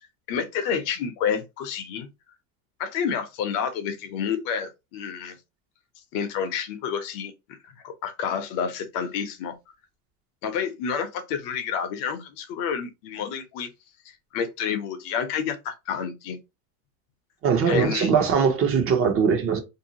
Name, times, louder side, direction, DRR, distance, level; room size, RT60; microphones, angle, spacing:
voice 1, 0.3-2.1 2.8-5.4 6.1-7.3 7.8-9.5 10.4-13.7 14.3-16.4 17.7-18.1, left 7 dB, 50° left, 0.7 m, -29 dB
voice 2, 17.4-19.6, right 6 dB, 30° right, 0.7 m, -21 dB
2.7 x 2.3 x 2.8 m
hypercardioid pair, 110°, 44 cm